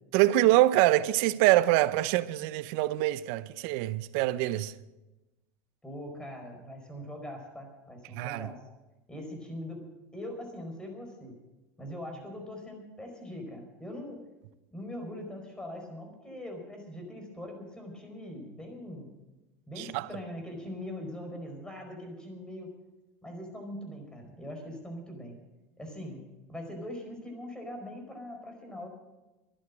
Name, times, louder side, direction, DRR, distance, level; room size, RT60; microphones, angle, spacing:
voice 1, 0.1-4.7 8.1-8.5 19.8-20.1, right 16 dB, 65° right, 0.7 m, -25 dB
voice 2, 5.8-8.6 9.1-9.8 10.1-11.3 11.8-14.2 14.7-19.1 19.7-22.7 23.2-25.3 25.8-26.2 26.5-28.9, left 1 dB, 10° left, 4.8 m, -41 dB
12.5 x 11.0 x 8.7 m
supercardioid pair, 110°, 8 cm